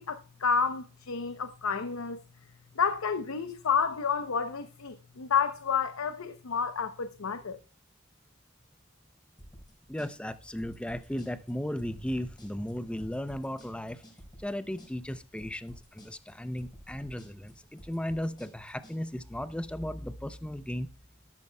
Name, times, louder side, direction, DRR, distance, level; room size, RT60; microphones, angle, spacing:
voice 1, 0.0-2.2 2.8-7.6, left 6 dB, 80° left, 0.7 m, -30 dB
sound 1, 9.4-19.0, equal, 20° left, 4.8 m, -52 dB
voice 2, 9.9-14.0 14.4-20.9, left 1 dB, 5° left, 0.5 m, -36 dB
12.5 x 12.0 x 2.2 m
head